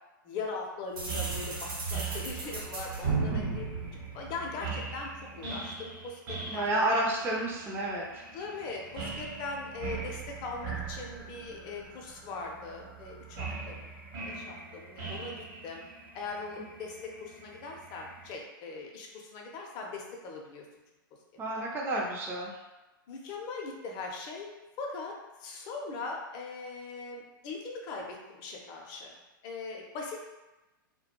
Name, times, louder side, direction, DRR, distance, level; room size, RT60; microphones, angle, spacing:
voice 1, 0.2-3.7 4.1-6.8 8.3-14.0 14.2-15.8 16.1-20.7 21.6-21.7 23.1-25.1 25.4-29.1 29.4-30.2, left 4 dB, 40° left, 0 dB, 0.6 m, -40 dB
sound 1, 1.0-4.8, right 4 dB, 80° right, 0.9 m, -34 dB
sound 2, 1.1-18.4, right 5 dB, 45° right, 0.8 m, -42 dB
voice 2, 6.5-8.2 21.4-22.6, right 1 dB, 20° right, -3 dB, 0.5 m, -30 dB
2.3 x 2.2 x 2.8 m, 1.1 s
hypercardioid pair, 115°, 12 cm